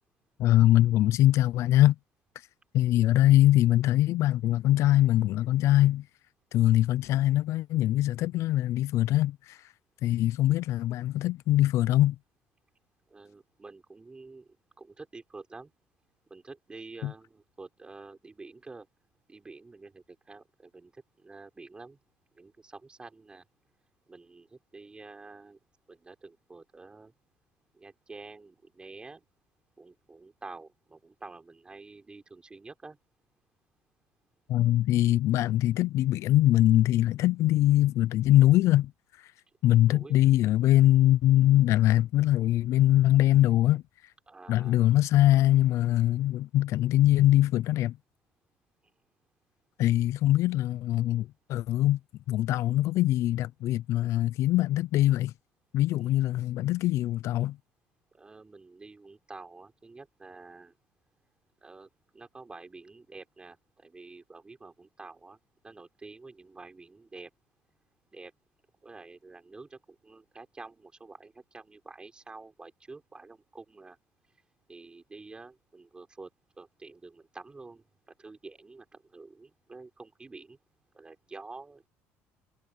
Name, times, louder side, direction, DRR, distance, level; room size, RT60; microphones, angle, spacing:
voice 1, 0.4-2.0 2.7-6.0 6.5-9.7 10.0-12.2 17.0-17.1 34.5-38.9 39.2-39.3 39.6-43.8 44.5-48.0 49.8-52.0 52.3-55.3 55.7-57.6, left 14 dB, 60° left, 0.5 m, -23 dB
voice 2, 13.1-14.5 14.8-15.7 16.3-18.9 19.3-22.0 22.3-23.5 24.1-25.6 25.9-27.1 27.7-29.2 29.8-33.0 39.8-40.3 44.3-44.8 58.1-60.7 61.6-65.4 65.6-67.3 68.1-68.3 68.8-74.0 74.7-76.3 76.6-80.6 80.9-81.9, right 3 dB, 15° right, 4.3 m, -48 dB
cardioid pair, 125°, 6 cm